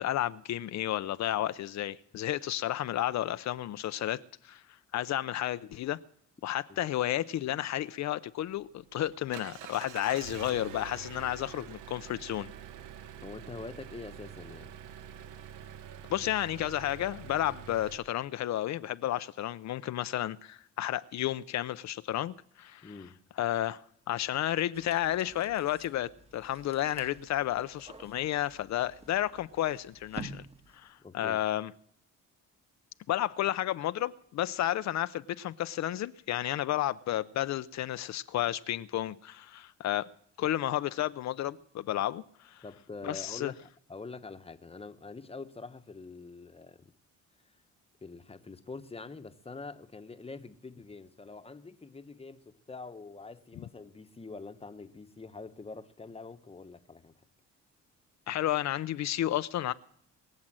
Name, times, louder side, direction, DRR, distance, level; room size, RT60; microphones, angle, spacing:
voice 1, 0.0-4.6 4.9-6.0 6.4-12.5 16.1-22.9 23.4-23.8 24.1-30.4 30.7-31.7 33.1-40.1 40.4-42.6 43.0-43.5 58.3-59.7, left 13 dB, 65° left, 0.6 m, -32 dB
Engine, 8.4-18.0, right 9 dB, 90° right, 0.9 m, -46 dB
voice 2, 13.2-14.8 22.8-23.2 31.0-31.4 42.6-46.9 48.0-57.2, left 3 dB, 20° left, 1.0 m, -45 dB
sound 1, 24.7-31.0, right 2 dB, 20° right, 1.4 m, -49 dB
22.5 x 7.6 x 7.5 m
cardioid pair, 90°, 30 cm